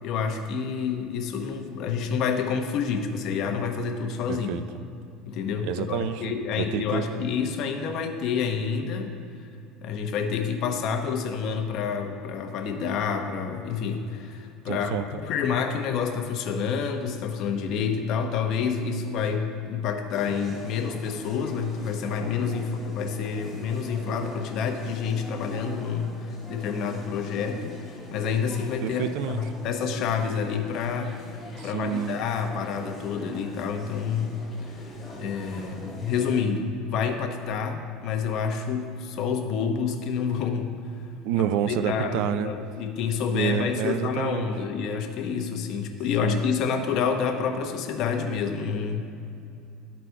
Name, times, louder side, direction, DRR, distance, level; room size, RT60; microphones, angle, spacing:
voice 1, 0.0-4.5 5.3-9.1 9.8-27.8 28.1-31.1 31.6-34.4 35.2-40.8 41.4-49.0, left 6 dB, 55° left, 5 dB, 0.8 m, -28 dB
voice 2, 4.3-4.6 5.6-7.0 14.7-15.1 28.8-29.4 31.6-32.2 41.2-42.5 43.3-44.5 46.2-46.4, right 10 dB, 70° right, 12 dB, 0.4 m, -28 dB
sound 1, 20.1-36.4, equal, 15° left, 1.8 m, -43 dB
12.5 x 4.1 x 4.6 m, 2.6 s
supercardioid pair, 130°, 0 cm